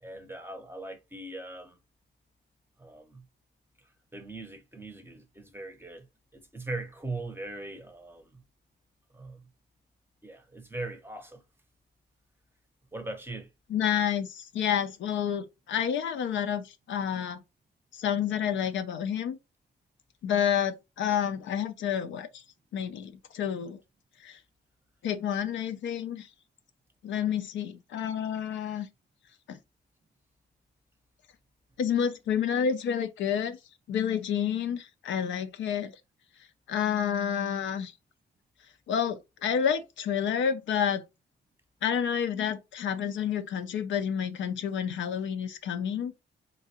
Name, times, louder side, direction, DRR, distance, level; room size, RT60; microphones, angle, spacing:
voice 1, 0.0-1.8 2.8-3.2 4.1-6.1 6.3-8.4 9.1-9.4 10.2-11.4 12.9-13.5, right 2 dB, 10° right, 0.7 m, -40 dB
voice 2, 13.7-17.4 17.9-19.4 20.2-22.4 22.7-23.8 24.2-24.4 25.0-26.3 27.0-28.9 29.5-29.6 31.8-33.6 33.9-35.9 36.7-37.9 38.9-41.0 41.8-46.2, left 8 dB, 80° left, 0.5 m, -29 dB
3.8 x 2.3 x 2.8 m
cardioid pair, 90°, 19 cm